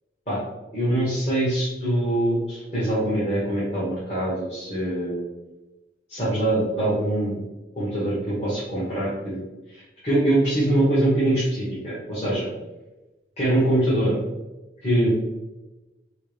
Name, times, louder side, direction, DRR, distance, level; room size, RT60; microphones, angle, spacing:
voice 1, 0.7-5.2 6.1-7.4 7.8-9.4 9.7-12.5 13.4-14.2 14.8-15.1, right 1 dB, 40° left, -10 dB, 1.2 m, -23 dB
4.4 x 2.1 x 3.4 m, 1.1 s
head